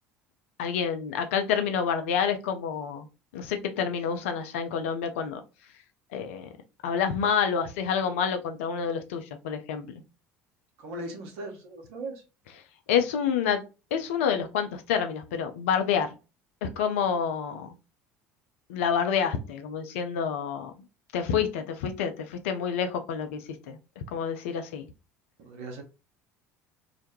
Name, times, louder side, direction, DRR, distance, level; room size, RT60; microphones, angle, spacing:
voice 1, 0.6-3.1 3.3-5.4 6.1-6.5 6.8-9.9 12.9-13.6 13.9-16.1 16.6-17.7 18.7-20.7 21.1-24.9, left 7 dB, 65° left, 7 dB, 0.4 m, -28 dB
voice 2, 10.8-12.2 25.4-25.8, right 2 dB, 60° right, 3 dB, 0.8 m, -38 dB
2.2 x 2.1 x 2.9 m, 0.30 s
figure-of-eight pair, 65°, 8 cm